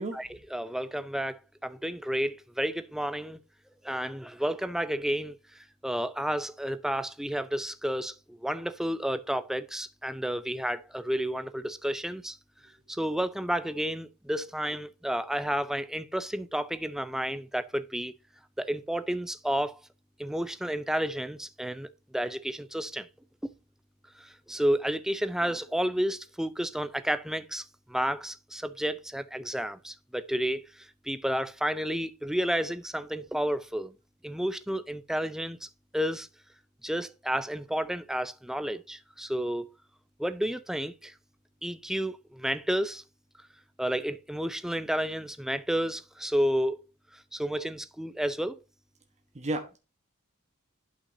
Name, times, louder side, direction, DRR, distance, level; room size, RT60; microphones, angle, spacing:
voice 1, 0.1-3.4 3.8-5.4 5.8-12.4 12.9-18.1 18.6-19.8 20.2-21.9 22.1-23.1 24.2-33.9 34.2-35.7 35.9-36.3 36.8-39.7 40.2-41.1 41.6-43.0 43.8-46.8 47.1-48.6, equal, ahead, 0.5 m, -31 dB
voice 2, 49.3-49.8, right 2 dB, 30° right, 1.1 m, -33 dB
11.5 x 5.7 x 2.6 m
head